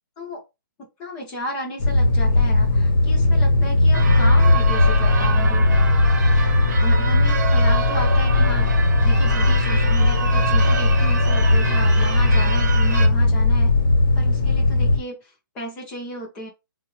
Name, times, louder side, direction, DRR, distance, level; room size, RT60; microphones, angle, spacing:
voice 1, 0.8-5.7 6.8-8.7 9.0-13.7 14.2-15.3 15.5-16.5, right 1 dB, 10° left, 0 dB, 0.5 m, -34 dB
sound 1, 1.8-15.0, left 2 dB, 65° left, 0.9 m, -18 dB
Church bell / Car / Alarm, 3.9-13.1, right 5 dB, 50° right, 0.9 m, -28 dB
3.9 x 2.2 x 3.0 m, 0.24 s
hypercardioid pair, 180°, 12 cm